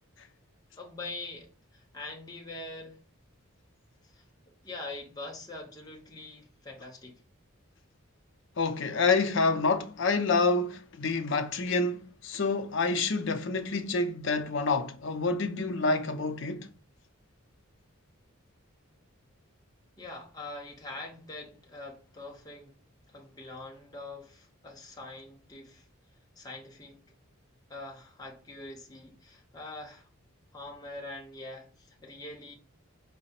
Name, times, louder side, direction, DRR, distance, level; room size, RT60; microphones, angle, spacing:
voice 1, 0.8-3.0 4.0-7.2 20.0-22.7 23.1-25.8 26.4-27.0 27.7-30.1 30.5-32.5, left 2 dB, 20° left, 0.8 m, -44 dB
voice 2, 8.6-16.7, left 3 dB, 60° left, 0.5 m, -28 dB
4.7 x 2.1 x 4.1 m
head